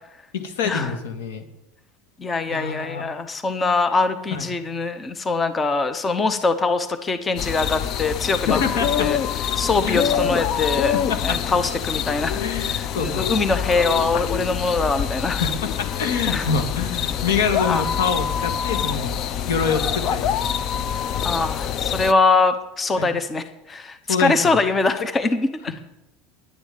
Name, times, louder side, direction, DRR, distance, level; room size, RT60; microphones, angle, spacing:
voice 1, 0.3-1.5 2.5-3.0 4.3-4.5 8.5-9.1 9.8-10.3 10.9-11.4 12.4-13.3 15.4-19.2 19.5-20.5 23.0-23.1 24.1-24.6, left 5 dB, 85° left, 7 dB, 1.8 m, -26 dB
voice 2, 2.2-8.6 9.0-11.0 11.2-15.4 16.3-16.5 17.7-17.9 21.2-25.8, left 3 dB, 20° left, 11 dB, 0.9 m, -23 dB
sound 1, 7.4-22.1, left 8 dB, 50° left, 0.6 m, -25 dB
10.5 x 7.1 x 9.1 m, 0.93 s
supercardioid pair, 115°, 0 cm